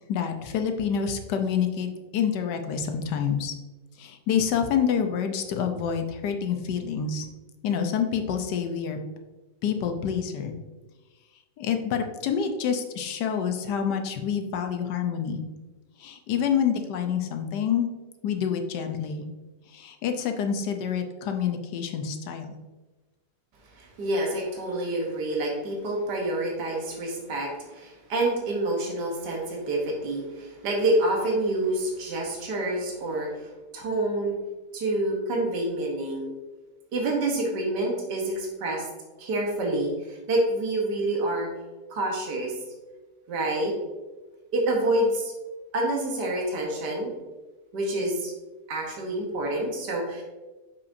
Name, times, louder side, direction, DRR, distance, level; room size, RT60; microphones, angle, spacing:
voice 1, 0.1-3.5 4.0-7.3 7.6-9.0 9.6-10.5 11.6-15.4 16.0-17.9 18.2-19.3 19.7-22.6, left 7 dB, 85° left, 6 dB, 1.3 m, -27 dB
voice 2, 23.7-33.5 33.7-34.4 34.7-36.3 36.9-38.9 39.2-41.5 41.9-42.5 43.3-43.7 44.5-45.3 45.7-47.1 47.7-48.3 48.7-50.2, right 1 dB, 80° right, -1 dB, 1.7 m, -27 dB
6.7 x 5.6 x 2.6 m, 1.2 s
omnidirectional pair, 1.8 m